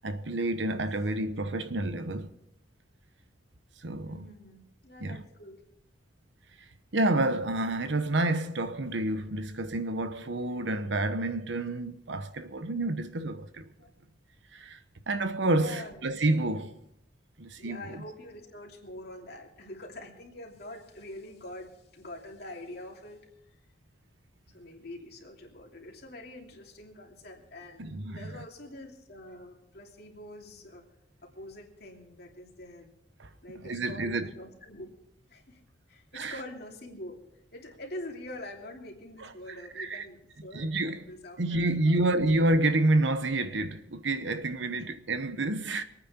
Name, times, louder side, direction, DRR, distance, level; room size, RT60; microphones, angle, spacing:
voice 1, 0.0-2.3 3.8-4.3 5.0-5.2 6.9-13.7 14.5-14.8 15.1-16.8 17.4-18.0 27.8-28.3 33.2-33.3 33.6-34.3 36.1-36.3 39.8-40.0 40.5-41.0 41.4-45.8, right 2 dB, 75° right, 1.0 m, -29 dB
voice 2, 4.0-5.6 13.8-13.9 15.5-16.1 17.6-23.5 24.5-30.8 31.2-32.9 33.4-34.9 35.3-35.6 35.9-37.2 37.5-42.3 44.8-44.9, left 1 dB, 55° left, 2.9 m, -45 dB
24.5 x 9.4 x 4.4 m
head